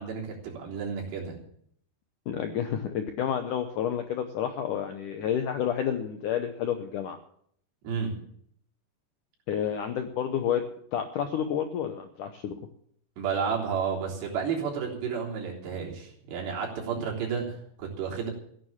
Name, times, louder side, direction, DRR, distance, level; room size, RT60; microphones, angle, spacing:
voice 1, 0.0-1.4 7.8-8.2 13.2-18.3, right 6 dB, 80° right, -2 dB, 5.7 m, -31 dB
voice 2, 2.3-7.2 9.5-10.6 10.9-12.5, left 9 dB, 75° left, 6 dB, 1.9 m, -30 dB
16.0 x 9.5 x 7.2 m, 0.65 s
omnidirectional pair, 4.9 m